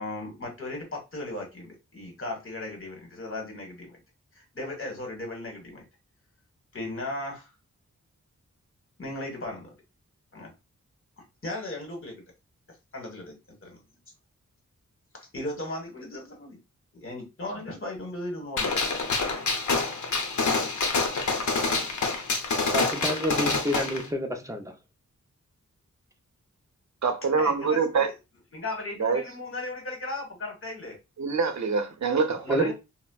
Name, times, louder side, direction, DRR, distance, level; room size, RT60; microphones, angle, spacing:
voice 1, 0.0-4.0 4.3-5.8 6.7-7.5 9.0-9.7 10.3-10.5 11.4-12.2 12.9-13.4 13.6-13.8 15.3-16.6 17.0-18.8 27.4-28.1 28.5-31.0 32.4-32.7, left 2 dB, 45° left, 1.3 m, -36 dB
Gunshot gunfire, 18.6-24.0, left 3 dB, 70° left, 0.7 m, -27 dB
voice 2, 22.5-24.7 32.5-32.7, equal, 10° right, 0.5 m, -29 dB
voice 3, 27.0-28.1 29.0-29.2 31.2-32.7, right 5 dB, 65° right, 0.7 m, -25 dB
4.1 x 2.0 x 2.3 m
wide cardioid pair, 105°, 30 cm